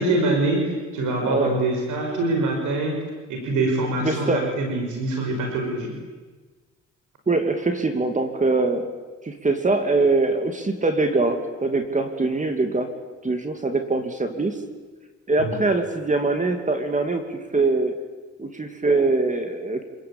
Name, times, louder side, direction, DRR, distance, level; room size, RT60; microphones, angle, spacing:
voice 1, 0.0-3.0 3.3-5.9 15.4-15.5, right 2 dB, 85° right, 2 dB, 6.1 m, -24 dB
voice 2, 1.3-1.6 4.0-4.6 7.3-8.9 9.2-12.9 13.2-14.6 15.3-18.0 18.4-19.8, right 3 dB, 25° right, 6 dB, 2.6 m, -23 dB
27.5 x 20.5 x 8.8 m, 1.3 s
cardioid pair, 90°, 30 cm